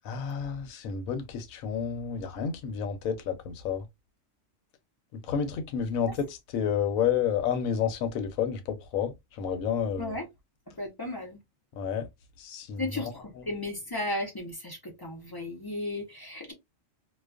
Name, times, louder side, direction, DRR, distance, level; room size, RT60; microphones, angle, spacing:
voice 1, 0.0-3.8 5.3-10.1 11.8-12.1 12.4-13.0, left 7 dB, 80° left, 1.0 m, -30 dB
voice 2, 10.8-11.4 12.8-16.5, left 1 dB, 35° left, 0.3 m, -35 dB
2.3 x 2.3 x 2.3 m
omnidirectional pair, 1.4 m